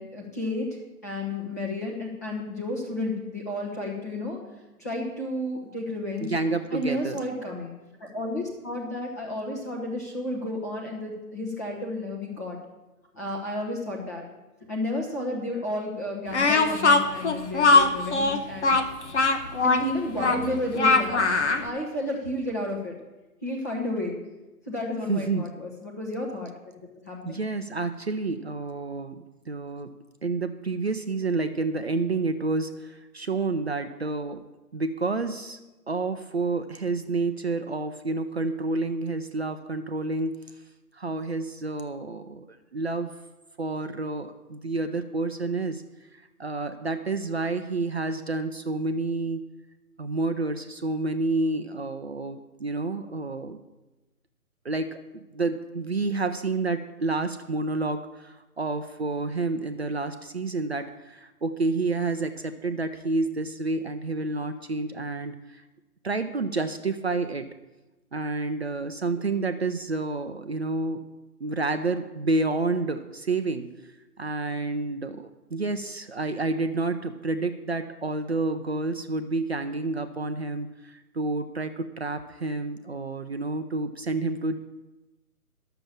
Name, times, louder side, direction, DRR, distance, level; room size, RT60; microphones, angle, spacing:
voice 1, 0.0-4.4 4.8-6.3 6.7-7.7 8.0-12.6 13.1-14.2 14.7-18.7 19.6-21.2 21.5-22.9 23.4-24.2 24.7-26.7 27.1-27.4, left 1 dB, 10° left, -2 dB, 0.9 m, -32 dB
voice 2, 6.2-7.2 25.1-25.5 27.2-29.9 30.2-34.4 34.7-35.6 35.9-40.4 40.9-43.1 43.6-45.8 46.1-49.5 50.0-53.6 54.6-65.6 66.0-67.5 68.1-71.0 71.4-73.9 74.2-84.6, right 3 dB, 45° right, 8 dB, 0.6 m, -29 dB
Speech, 16.3-21.7, left 3 dB, 45° left, 1.0 m, -21 dB
11.0 x 6.9 x 7.3 m, 1.1 s
figure-of-eight pair, 155°, 46 cm